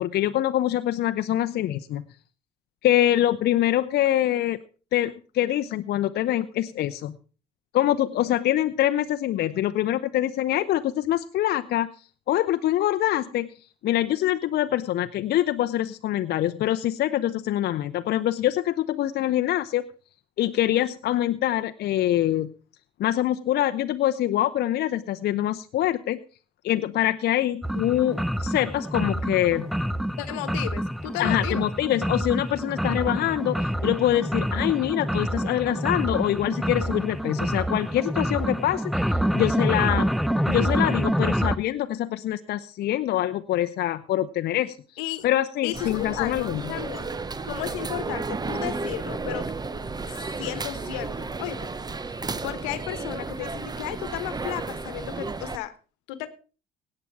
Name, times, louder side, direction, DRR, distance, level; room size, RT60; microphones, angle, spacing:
voice 1, 0.0-2.0 2.8-4.6 4.9-7.1 7.7-11.9 12.3-13.5 13.8-19.8 20.4-22.5 23.0-26.2 26.6-29.7 31.2-38.9 39.3-40.1 40.5-44.8 45.2-46.6, left 13 dB, 60° left, 9 dB, 0.7 m, -24 dB
sound 1, 27.6-41.6, equal, ahead, 0.6 m, -27 dB
voice 2, 30.2-31.7 45.0-45.3 45.6-47.1 47.4-49.5 50.1-51.7 52.0-55.7 56.1-56.3, left 14 dB, 85° left, 14 dB, 1.2 m, -34 dB
sound 2, 45.7-55.6, right 3 dB, 20° right, 0.9 m, -33 dB
17.0 x 8.8 x 4.7 m, 0.36 s
supercardioid pair, 70°, 19 cm